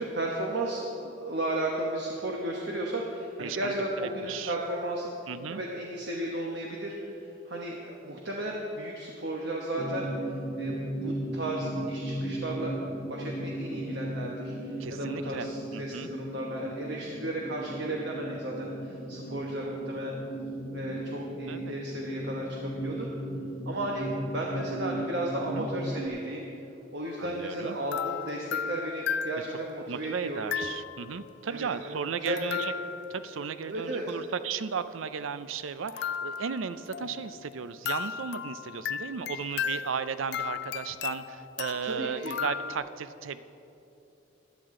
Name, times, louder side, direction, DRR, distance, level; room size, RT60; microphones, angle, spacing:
voice 1, 0.0-5.2 5.5-10.1 10.6-12.7 13.1-20.1 20.7-23.1 23.6-26.4 26.9-30.4 31.5-32.6 33.7-34.1 41.8-42.4, right 1 dB, 60° right, -1 dB, 1.1 m, -34 dB
voice 2, 3.4-4.5 5.3-5.6 14.8-16.1 21.5-21.7 25.4-25.7 27.2-27.8 29.9-32.7 33.1-43.4, right 6 dB, 85° right, 13 dB, 0.5 m, -35 dB
sound 1, 9.8-26.1, right 1 dB, 30° left, 0.7 m, -36 dB
sound 2, 27.0-27.3 27.9-29.8 30.5-31.2 32.3-33.3 35.9-37.5 37.8-42.8, left 8 dB, 60° left, 0.3 m, -35 dB
15.5 x 10.5 x 3.8 m, 2.9 s
head